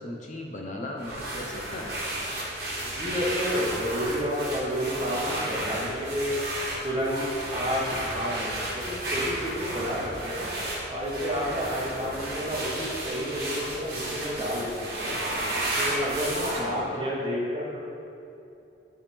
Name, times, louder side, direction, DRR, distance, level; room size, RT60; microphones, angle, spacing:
voice 1, 0.0-2.0 16.6-17.1, left 1 dB, 40° left, 0 dB, 0.5 m, -37 dB
sound 1, 1.0-16.6, right 1 dB, 55° right, 1.3 m, -32 dB
voice 2, 2.8-6.3 6.8-10.5 10.9-15.2 15.8-17.8, equal, 25° right, -5 dB, 1.2 m, -30 dB
10.5 x 3.4 x 3.4 m, 2.8 s
head